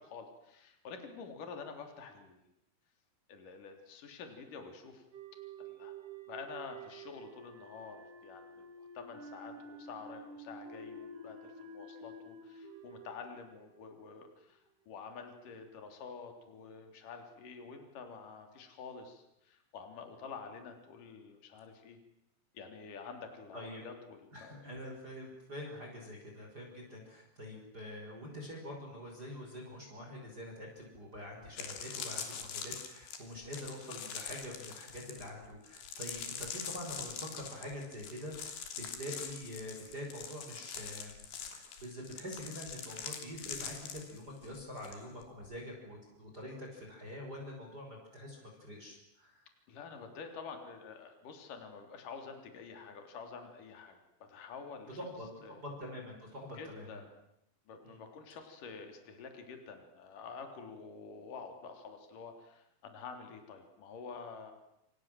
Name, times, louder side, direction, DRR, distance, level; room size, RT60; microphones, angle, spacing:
voice 1, 0.0-2.4 3.3-5.0 5.6-5.9 6.3-8.7 8.9-22.0 22.5-24.6 49.7-54.0 54.3-55.0 55.4-55.6 56.6-57.1 57.7-64.5, left 5 dB, 50° left, 5 dB, 4.9 m, -48 dB
sound 1, 5.1-14.3, right 2 dB, 50° right, 4.9 m, -50 dB
voice 2, 23.5-23.8 24.3-41.1 41.5-49.5 55.0-57.0 57.8-58.0, left 1 dB, 20° right, 0 dB, 5.8 m, -45 dB
sound 2, 31.0-31.1 31.4-45.0 45.2-45.6, left 7 dB, 90° left, 5.3 m, -43 dB
28.0 x 27.5 x 7.7 m, 0.81 s
omnidirectional pair, 4.8 m